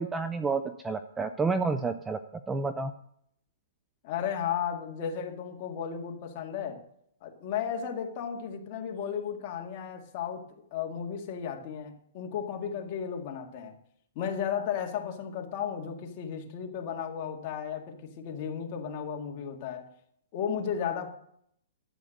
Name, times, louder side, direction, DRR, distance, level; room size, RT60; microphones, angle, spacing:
voice 1, 0.0-2.2 2.5-2.9, right 4 dB, 10° right, 0.5 m, -29 dB
voice 2, 4.0-6.8 7.2-10.4 10.7-13.8 14.2-19.8 20.3-21.1, left 8 dB, 35° left, 2.1 m, -34 dB
12.0 x 8.2 x 6.5 m
hypercardioid pair, 160°, 0 cm